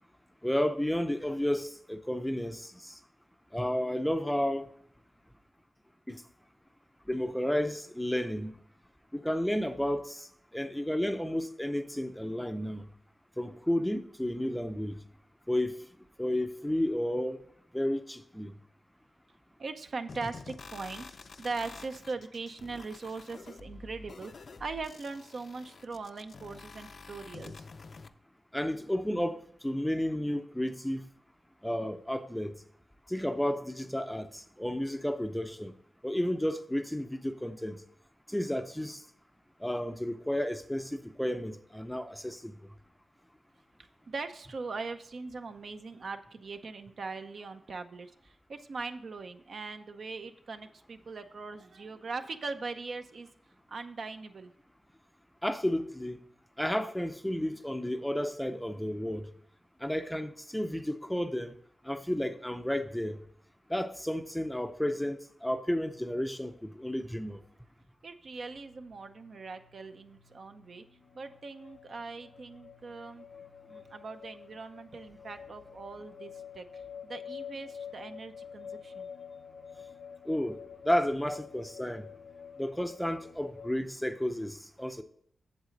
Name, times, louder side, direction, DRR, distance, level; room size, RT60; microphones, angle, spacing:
voice 1, 0.4-3.0 3.5-4.7 6.1-6.2 7.1-8.5 9.1-10.3 10.5-12.9 13.4-15.0 15.5-15.7 16.2-17.4 17.7-18.5 28.5-31.1 31.6-32.5 33.1-35.7 36.0-37.8 38.3-39.0 39.6-42.5 55.4-56.2 56.6-59.3 59.8-61.5 61.8-63.2 63.7-67.4 80.3-82.1 82.6-85.0, left 1 dB, 5° left, 0.5 m, -32 dB
voice 2, 19.6-27.7 43.8-53.3 53.7-54.5 68.0-70.8 71.1-73.3 73.7-79.1, right 4 dB, 60° right, 0.7 m, -41 dB
sound 1, 20.1-28.1, left 4 dB, 55° left, 0.5 m, -48 dB
sound 2, 68.3-83.7, left 7 dB, 75° left, 0.8 m, -48 dB
8.0 x 7.4 x 3.9 m
wide cardioid pair, 120°, 0 cm